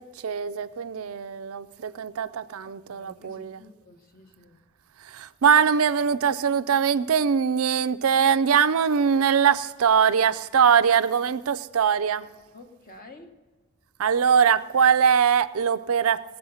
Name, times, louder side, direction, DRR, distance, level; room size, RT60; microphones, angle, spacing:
voice 1, 0.0-3.6 5.0-12.3 14.0-16.2, right 7 dB, 70° right, 0.5 m, -22 dB
voice 2, 2.6-4.6 12.5-13.3, left 2 dB, 40° left, 1.3 m, -50 dB
18.5 x 8.0 x 5.6 m
head